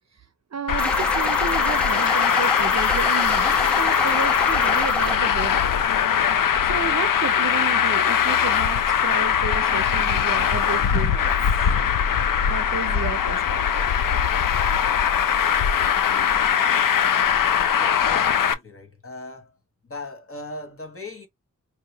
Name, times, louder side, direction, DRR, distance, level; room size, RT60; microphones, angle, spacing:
voice 1, 0.5-5.7 6.6-11.3 12.5-13.9, right 6 dB, 55° right, 0.6 m, -32 dB
Traffic noise roadway noise, 0.7-18.5, left 8 dB, 85° left, 0.5 m, -21 dB
sound 1, 0.8-5.2, left 1 dB, 5° left, 1.0 m, -26 dB
voice 2, 17.7-19.6 19.8-21.3, left 2 dB, 40° left, 1.3 m, -38 dB
4.5 x 2.8 x 2.7 m
wide cardioid pair, 65°, 32 cm